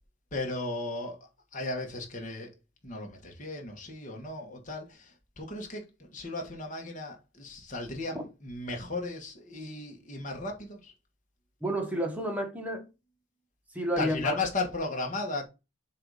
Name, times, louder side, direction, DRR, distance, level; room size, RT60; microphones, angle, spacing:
voice 1, 0.3-2.5 2.8-10.9 14.0-15.5, left 2 dB, 35° left, 1.5 m, -35 dB
voice 2, 11.6-12.9 13.7-14.4, equal, 5° right, 1.2 m, -30 dB
7.4 x 2.7 x 4.8 m
head